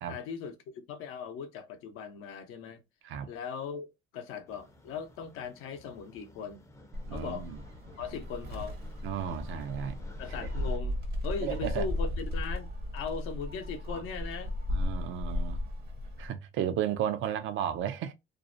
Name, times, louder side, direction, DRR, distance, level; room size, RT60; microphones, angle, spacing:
voice 1, 0.1-2.8 3.3-3.9 4.1-6.7 7.1-7.5 8.0-8.8 10.2-11.0 11.2-12.7 12.9-14.5, left 6 dB, 80° left, 0.6 m, -39 dB
sound 1, 4.5-10.8, left 1 dB, 15° left, 0.5 m, -54 dB
Gull seagull, 6.9-16.3, left 1 dB, 50° right, 0.8 m, -35 dB
voice 2, 7.1-7.6 9.0-10.0 10.4-10.5 11.4-11.9 13.9-14.0 14.7-15.6 16.2-18.1, right 9 dB, 70° right, 0.5 m, -33 dB
2.5 x 2.0 x 2.6 m
cardioid pair, 100°, 21 cm